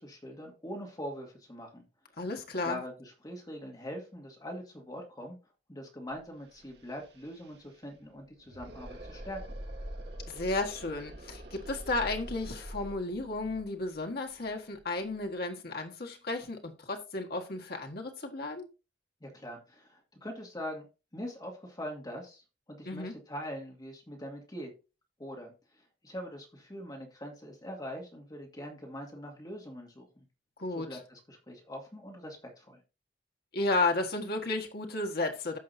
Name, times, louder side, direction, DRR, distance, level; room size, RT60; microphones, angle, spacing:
voice 1, 0.0-1.8 2.6-5.4 5.7-9.6 19.2-20.8 21.1-22.4 22.7-24.7 25.2-30.2 30.7-32.8, equal, 20° left, 2.3 m, -43 dB
voice 2, 2.2-2.8 10.3-18.7 22.8-23.1 30.6-31.0 33.5-35.6, left 2 dB, 60° left, 1.7 m, -33 dB
sound 1, 6.1-6.2 6.4-15.2, equal, 65° right, 1.8 m, -45 dB
15.0 x 5.6 x 2.7 m
head